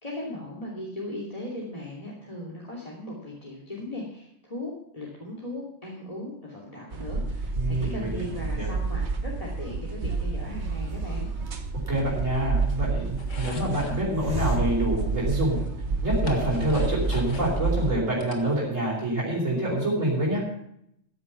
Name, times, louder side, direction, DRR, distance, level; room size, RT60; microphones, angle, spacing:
voice 1, 0.0-11.3, left 1 dB, 30° left, -3 dB, 3.0 m, -38 dB
sound 1, 6.9-17.9, right 3 dB, 65° right, 1.5 m, -29 dB
voice 2, 7.6-8.3 8.6-8.7 11.9-15.6 16.0-20.4, right 1 dB, 85° right, -6 dB, 4.6 m, -26 dB
Hiss, 10.4-15.9, left 1 dB, 15° right, 3.0 m, -41 dB
sound 2, 13.2-14.0 15.2-15.3 15.7-17.6 17.9-19.0, left 3 dB, 80° left, 2.1 m, -41 dB
14.5 x 9.9 x 5.8 m, 0.74 s
omnidirectional pair, 1.3 m